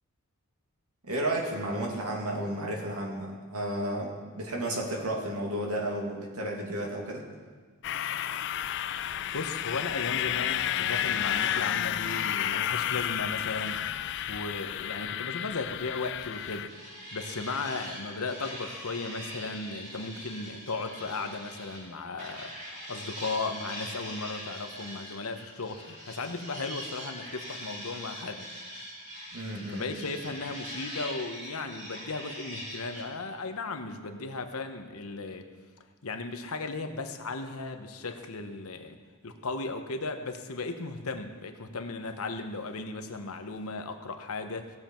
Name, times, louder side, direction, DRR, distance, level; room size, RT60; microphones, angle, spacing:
voice 1, 1.0-7.2 29.3-29.8, right 1 dB, 85° right, -1 dB, 2.3 m, -32 dB
sound 1, 7.8-16.7, left 10 dB, 50° left, 0.3 m, -31 dB
voice 2, 8.9-13.9 14.3-16.8 17.1-28.5 29.7-35.4 36.0-39.0 39.2-44.7, left 3 dB, 80° left, 7 dB, 1.0 m, -36 dB
sound 2, 16.2-21.9 22.2-33.0, equal, 35° right, 3.7 m, -42 dB
17.5 x 7.4 x 4.5 m, 1.5 s
head